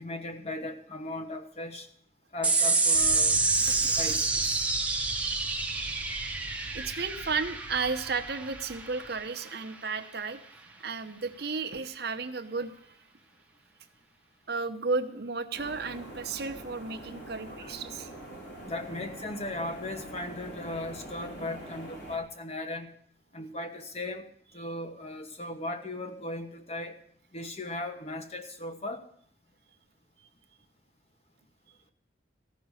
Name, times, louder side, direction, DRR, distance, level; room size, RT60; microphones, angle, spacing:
voice 1, 0.0-1.9 2.3-3.4 4.0-4.6 17.5-17.8 18.6-22.9 23.3-24.2 24.5-27.0 27.3-29.1, left 2 dB, 35° left, 6 dB, 1.2 m, -37 dB
sound 1, 2.4-9.2, right 3 dB, 5° right, 1.0 m, -28 dB
Aircraft, 2.9-9.3, right 1 dB, 35° right, 0.9 m, -45 dB
voice 2, 3.5-4.2 6.7-10.4 10.8-12.8 14.5-18.4 30.2-30.3, right 4 dB, 55° right, 8 dB, 0.9 m, -34 dB
sound 2, 15.5-22.2, right 1 dB, 65° left, 4.6 m, -44 dB
14.5 x 6.1 x 9.8 m, 0.64 s
head